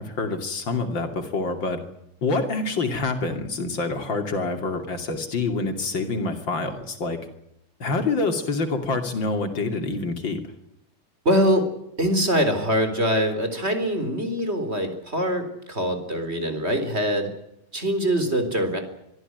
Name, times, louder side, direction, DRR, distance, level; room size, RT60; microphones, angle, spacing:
voice 1, 0.0-1.8 2.2-7.2 7.8-10.4, left 3 dB, 75° left, 6 dB, 3.5 m, -26 dB
voice 2, 11.2-11.7 12.0-17.3 17.7-18.8, equal, 30° right, 8 dB, 4.1 m, -23 dB
24.5 x 14.5 x 9.3 m, 0.82 s
omnidirectional pair, 2.1 m